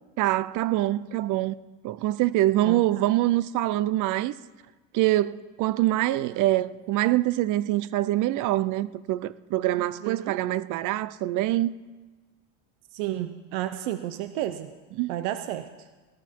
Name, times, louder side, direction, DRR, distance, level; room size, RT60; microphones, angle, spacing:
voice 1, 0.2-1.5 1.8-4.3 4.9-11.8 15.0-15.1, right 15 dB, 55° right, 0.6 m, -25 dB
voice 2, 9.8-10.3 12.9-14.7 15.1-15.9, right 13 dB, 80° right, 0.8 m, -32 dB
18.0 x 13.0 x 4.5 m
supercardioid pair, 115°, 37 cm